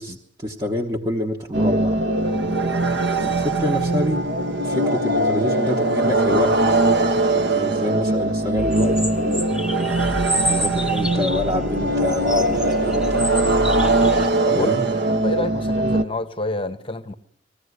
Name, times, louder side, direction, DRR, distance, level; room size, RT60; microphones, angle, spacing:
voice 1, 0.0-2.0 3.2-4.3 4.6-6.8 7.3-9.5 10.5-13.3 14.5-14.8, left 2 dB, 20° right, 1.1 m, -26 dB
sound 1, 1.5-16.0, right 2 dB, 65° right, 1.1 m, -21 dB
sound 2, 8.6-14.3, equal, 5° right, 0.8 m, -29 dB
voice 2, 14.5-17.1, left 2 dB, 30° left, 0.9 m, -29 dB
20.5 x 15.0 x 9.5 m
head